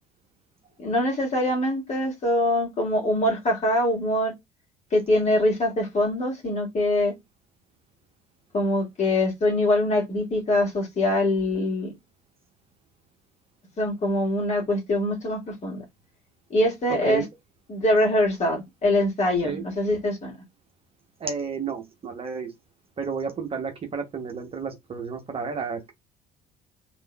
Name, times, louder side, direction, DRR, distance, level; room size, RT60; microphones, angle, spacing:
voice 1, 0.8-4.3 4.9-7.1 8.5-11.9 13.8-15.8 16.5-17.2 17.7-20.3, left 1 dB, 35° left, 1.7 m, -23 dB
voice 2, 21.2-22.5 23.0-25.9, right 5 dB, 30° right, 0.8 m, -31 dB
3.4 x 2.5 x 2.2 m
figure-of-eight pair, 55°, 20 cm